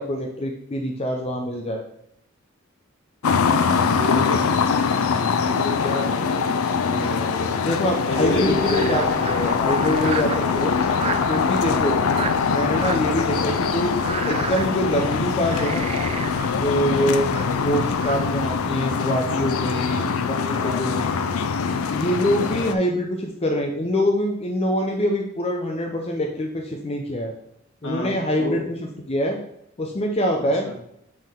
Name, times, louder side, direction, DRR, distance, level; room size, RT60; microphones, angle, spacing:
voice 1, 0.0-1.8 5.1-5.5 7.6-10.7 11.3-12.0 12.4-13.9 14.3-15.9 16.5-17.3 17.6-21.2 21.7-27.3 27.8-29.4 29.8-30.7, equal, 30° left, 1 dB, 0.6 m, -25 dB
sound 1, 3.2-22.7, left 6 dB, 90° left, 0.4 m, -23 dB
voice 2, 3.2-4.5 5.4-7.6 8.1-8.9 10.9-11.0 11.6-11.9 16.9-17.2 19.9-20.1 20.6-20.9 22.1-22.4 27.8-28.6 30.7-30.8, left 1 dB, 70° left, -2 dB, 1.7 m, -30 dB
Frog, 8.3-18.6, right 5 dB, 30° right, 0.3 m, -34 dB
7.9 x 3.7 x 3.5 m, 0.76 s
head